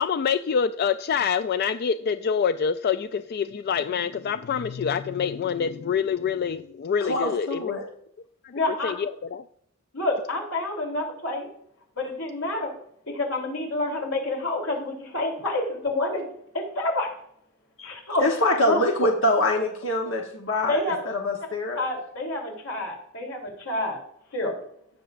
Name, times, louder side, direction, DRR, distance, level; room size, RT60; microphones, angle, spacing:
voice 1, 0.0-7.9 8.4-8.5 8.8-9.4, left 6 dB, 50° left, 11 dB, 0.3 m, -26 dB
voice 2, 7.1-7.8 17.8-20.8 21.2-21.8, left 1 dB, 65° left, 0 dB, 1.1 m, -24 dB
voice 3, 8.5-8.9 9.9-11.5 12.0-12.7 13.1-16.2 16.5-17.1 17.8-18.2 18.7-18.8 20.7-21.0 21.7-24.0 24.3-24.5, left 2 dB, 90° left, 1 dB, 3.3 m, -28 dB
17.5 x 6.7 x 2.5 m, 0.70 s
head